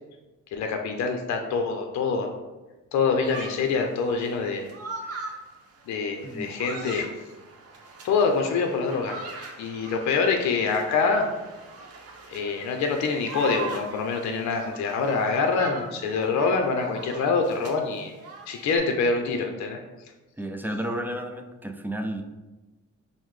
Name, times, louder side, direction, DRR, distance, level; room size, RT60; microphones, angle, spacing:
voice 1, 0.5-2.3 2.9-4.7 5.9-7.1 8.0-9.2 9.6-11.3 12.3-18.1 18.5-19.8, left 4 dB, 65° left, 3 dB, 0.6 m, -25 dB
sound 1, 3.2-18.8, right 3 dB, 55° right, 0.7 m, -41 dB
voice 2, 6.2-6.5 20.4-22.2, right 1 dB, 5° right, 4 dB, 0.3 m, -32 dB
5.5 x 2.1 x 3.1 m, 1.1 s
cardioid pair, 90°, 30 cm